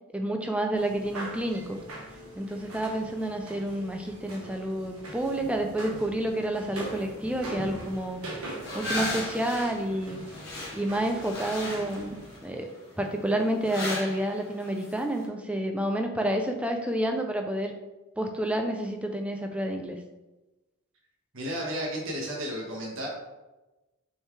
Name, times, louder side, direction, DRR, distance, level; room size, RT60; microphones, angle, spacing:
voice 1, 0.1-1.8 2.4-8.2 8.7-10.2 10.7-12.1 12.4-12.7 13.0-17.7 18.2-20.0, right 1 dB, 5° right, 4 dB, 0.5 m, -29 dB
sound 1, 0.8-12.4, right 1 dB, 75° right, 1.4 m, -41 dB
sound 2, 6.9-15.2, left 1 dB, 45° left, 1.7 m, -39 dB
voice 2, 21.3-23.1, equal, 60° right, -3 dB, 1.4 m, -33 dB
6.4 x 4.6 x 3.3 m, 1.1 s
head